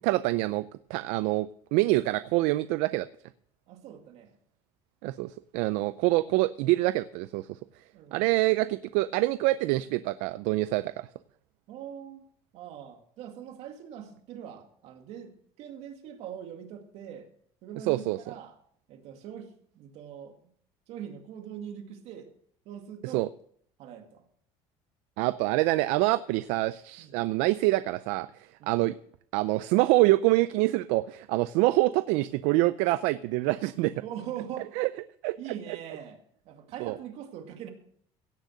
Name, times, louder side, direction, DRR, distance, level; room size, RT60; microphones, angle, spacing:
voice 1, 0.0-3.1 5.0-7.5 8.1-11.1 17.9-18.2 23.1-23.3 25.2-28.3 28.7-28.9 29.3-33.9 34.8-34.9 35.2-35.4 36.8-36.9, right 19 dB, 85° right, 14 dB, 0.5 m, -26 dB
voice 2, 3.7-4.3 7.9-8.3 11.7-12.2 12.5-17.3 17.6-18.5 18.9-20.4 20.9-22.3 22.7-23.3 23.8-24.2 27.0-27.2 28.6-28.8 34.0-34.7 35.4-36.2 36.5-37.7, right 9 dB, 65° right, 5 dB, 2.3 m, -42 dB
16.5 x 6.5 x 6.4 m, 0.64 s
cardioid pair, 130°, 11 cm